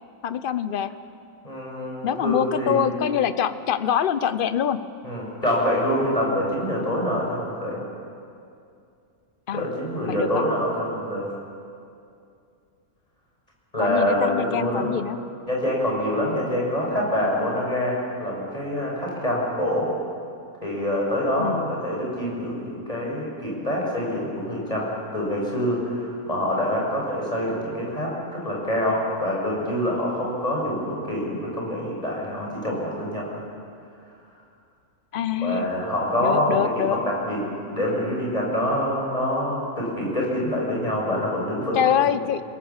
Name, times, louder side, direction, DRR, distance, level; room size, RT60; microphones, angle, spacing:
voice 1, 0.2-0.9 2.0-4.8 9.5-9.7 10.1-10.4 13.8-15.2 21.4-21.7 35.1-35.7 36.2-37.0 41.7-42.4, left 9 dB, 45° left, 13 dB, 0.7 m, -24 dB
voice 2, 1.4-2.9 5.0-7.8 9.5-11.3 13.7-14.9 15.5-19.9 20.6-24.9 25.1-33.3 35.4-37.4 37.7-41.8, left 1 dB, 25° left, -3 dB, 6.6 m, -25 dB
27.5 x 17.5 x 7.3 m, 2.5 s
omnidirectional pair, 1.6 m